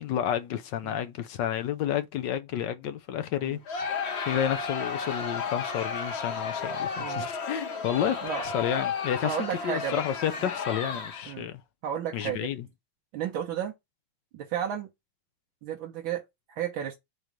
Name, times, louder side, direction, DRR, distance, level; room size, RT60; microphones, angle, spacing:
voice 1, 0.0-9.4 9.6-11.6 12.1-12.7, left 10 dB, 70° left, 1.3 m, -31 dB
Crowd, 3.7-11.4, left 5 dB, 45° left, 1.0 m, -33 dB
voice 2, 7.0-7.3 8.2-8.4 9.2-10.0 10.4-10.5 11.3-11.5 11.8-12.5 13.1-13.7 14.3-14.9 15.6-16.2 16.6-17.0, right 9 dB, 75° right, 1.6 m, -32 dB
6.3 x 2.9 x 5.2 m
omnidirectional pair, 2.2 m